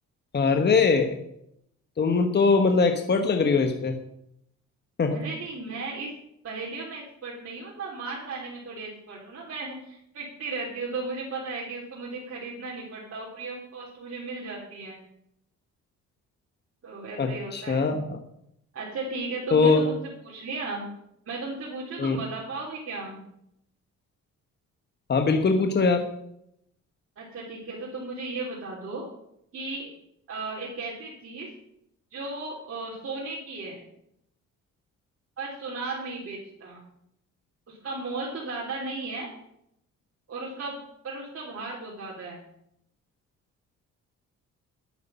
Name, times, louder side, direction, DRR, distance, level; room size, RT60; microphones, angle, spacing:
voice 1, 0.3-1.2 2.0-4.0 5.0-5.2 17.2-18.2 19.5-19.8 22.0-22.2 25.1-26.1, left 4 dB, 35° left, 5 dB, 1.2 m, -22 dB
voice 2, 5.1-6.1 6.4-15.0 16.8-17.9 18.7-19.9 20.2-20.9 21.3-23.2 27.2-29.1 29.5-29.9 30.3-31.5 32.1-33.8 35.4-36.8 37.7-39.3 40.3-40.8 41.0-42.4, right 3 dB, 50° right, -5 dB, 3.5 m, -35 dB
11.5 x 9.6 x 5.6 m, 0.77 s
cardioid pair, 90°, 30 cm